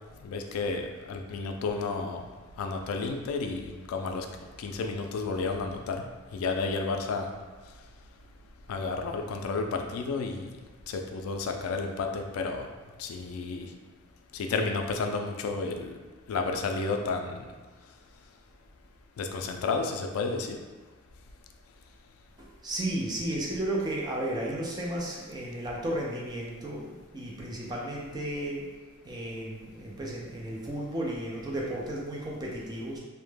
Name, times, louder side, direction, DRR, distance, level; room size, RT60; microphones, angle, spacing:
voice 1, 0.2-2.2 2.6-4.3 4.6-6.0 6.3-7.3 8.7-10.5 10.9-12.7 13.0-13.7 14.3-15.9 16.3-17.5 19.2-20.6, left 4 dB, 90° left, 7 dB, 0.3 m, -31 dB
voice 2, 22.4-28.7 29.0-33.0, right 1 dB, 20° right, -3 dB, 0.4 m, -34 dB
2.1 x 2.1 x 3.1 m, 1.4 s
head